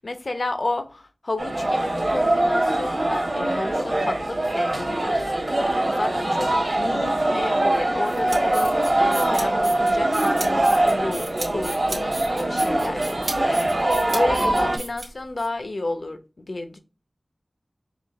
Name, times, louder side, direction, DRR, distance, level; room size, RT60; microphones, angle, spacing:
voice 1, 0.0-5.4 5.9-16.8, left 2 dB, 60° left, 0.7 m, -32 dB
sound 1, 1.4-14.8, right 1 dB, 45° right, 1.7 m, -23 dB
sound 2, 8.0-15.5, right 2 dB, 85° right, 1.9 m, -35 dB
5.0 x 2.5 x 3.7 m
wide cardioid pair, 60°, 0 cm